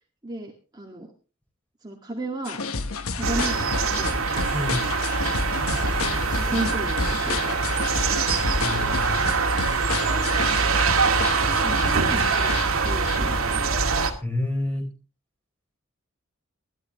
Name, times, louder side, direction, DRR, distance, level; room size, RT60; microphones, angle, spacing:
voice 1, 0.2-1.1 1.8-2.6 3.1-4.2 6.0-7.8 8.1-8.3 11.6-13.8, right 2 dB, 20° right, 1 dB, 2.0 m, -34 dB
sound 1, 2.4-13.2, left 4 dB, 90° left, 1.2 m, -31 dB
sound 2, 3.2-14.1, right 4 dB, 75° right, 2.3 m, -24 dB
voice 2, 4.5-4.9 8.6-9.1 14.2-14.9, left 1 dB, 5° left, 3 dB, 4.7 m, -28 dB
21.0 x 12.5 x 3.1 m, 0.34 s
head